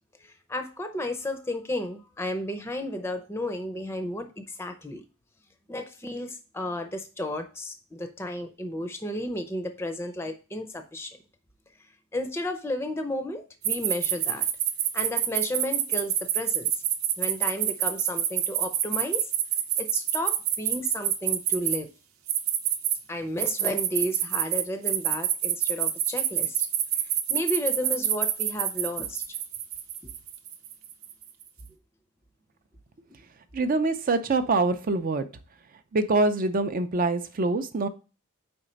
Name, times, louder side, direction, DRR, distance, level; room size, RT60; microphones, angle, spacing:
voice 1, 0.2-5.0 5.7-11.2 12.1-14.5 14.9-16.8 17.2-19.3 19.8-21.9 23.1-26.7 27.0-29.4 30.0-30.1, left 1 dB, 10° left, 7 dB, 0.6 m, -33 dB
sound 1, 13.6-21.8 22.3-23.0 23.4-31.2, right 11 dB, 70° right, 0.8 m, -26 dB
voice 2, 33.5-35.2 35.9-37.9, right 3 dB, 40° right, 10 dB, 0.5 m, -24 dB
4.8 x 4.3 x 5.0 m, 0.34 s
head